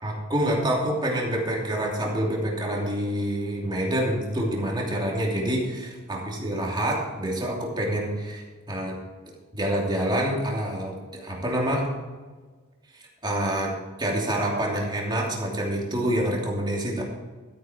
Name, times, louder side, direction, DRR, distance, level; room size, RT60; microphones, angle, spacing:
voice 1, 0.0-9.0 9.5-11.9 13.2-13.7 14.0-17.0, right 1 dB, 20° right, -2 dB, 2.8 m, -27 dB
13.5 x 8.7 x 4.6 m, 1.4 s
head